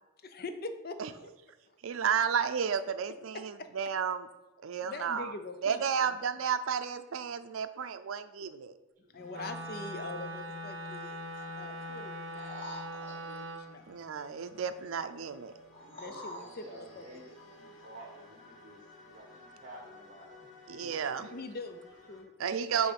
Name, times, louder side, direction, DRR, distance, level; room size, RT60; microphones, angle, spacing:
voice 1, 0.2-1.0 1.7-1.8 3.3-3.7 4.8-6.2 9.1-14.1 16.0-17.0 21.2-22.9, left 3 dB, 50° left, 8 dB, 0.6 m, -44 dB
voice 2, 1.8-4.3 4.6-5.3 5.6-8.7 13.9-15.5 20.7-21.3 22.4-22.9, right 7 dB, 90° right, 10 dB, 0.4 m, -32 dB
voice 3, 9.0-9.7 15.4-20.3 20.6-21.1, right 1 dB, 45° right, 0 dB, 1.3 m, -53 dB
sound 1, 9.2-22.2, left 2 dB, 75° left, 1.4 m, -55 dB
Wind instrument woodwind instrument, 9.3-13.7, equal, 65° right, 0.8 m, -41 dB
sound 2, 12.3-13.7 15.7-17.3 18.0-18.1, equal, 30° left, 1.9 m, -47 dB
7.8 x 3.2 x 5.8 m, 1.1 s
head